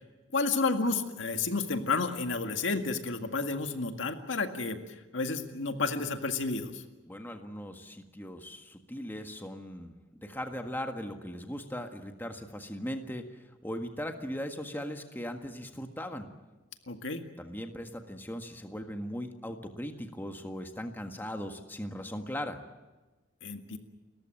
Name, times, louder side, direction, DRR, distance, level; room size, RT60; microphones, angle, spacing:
voice 1, 0.3-4.8 5.1-6.8 16.9-17.3 23.4-23.8, left 3 dB, 90° left, 6 dB, 1.9 m, -31 dB
voice 2, 7.1-9.9 10.2-16.3 17.4-22.6, equal, 10° left, 5 dB, 1.6 m, -39 dB
30.0 x 14.5 x 9.0 m, 1.2 s
head